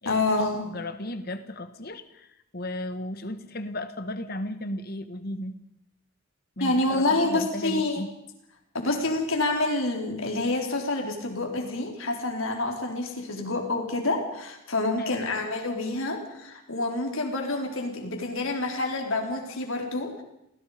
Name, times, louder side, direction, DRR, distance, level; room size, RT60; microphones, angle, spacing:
voice 1, 0.1-0.7 6.6-8.1 8.7-20.2, left 2 dB, 70° left, 2 dB, 4.3 m, -27 dB
voice 2, 0.6-2.3 2.5-5.6 6.6-8.1 15.0-15.3, left 1 dB, 45° left, 10 dB, 1.5 m, -35 dB
29.0 x 19.0 x 5.2 m, 0.84 s
head